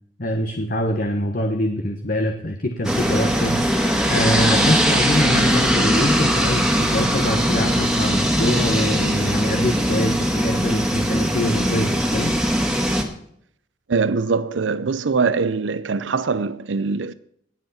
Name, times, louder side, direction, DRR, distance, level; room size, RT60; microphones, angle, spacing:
voice 1, 0.2-3.6 4.1-12.3, left 1 dB, 50° left, 1.3 m, -24 dB
sound 1, 2.8-13.0, equal, 5° right, 1.9 m, -20 dB
voice 2, 13.9-17.1, right 4 dB, 90° right, 0.6 m, -22 dB
19.5 x 8.1 x 4.3 m
head